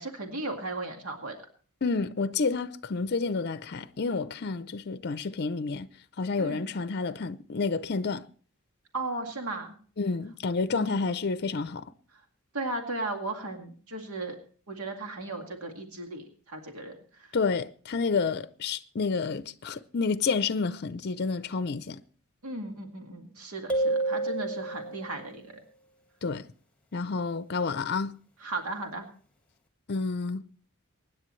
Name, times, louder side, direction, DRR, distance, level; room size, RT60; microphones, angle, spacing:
voice 1, 0.0-1.4 6.4-6.6 8.9-9.7 10.7-10.9 12.5-14.4 14.7-17.0 22.4-25.5 28.4-29.1, right 2 dB, 90° right, 2.1 m, -36 dB
voice 2, 1.8-5.9 6.2-8.2 10.0-11.9 17.3-22.0 26.2-26.5 26.9-28.2 29.9-30.4, left 4 dB, 50° left, 0.6 m, -29 dB
sound 1, 23.7-25.2, right 2 dB, 5° left, 1.8 m, -29 dB
24.5 x 9.9 x 3.2 m
head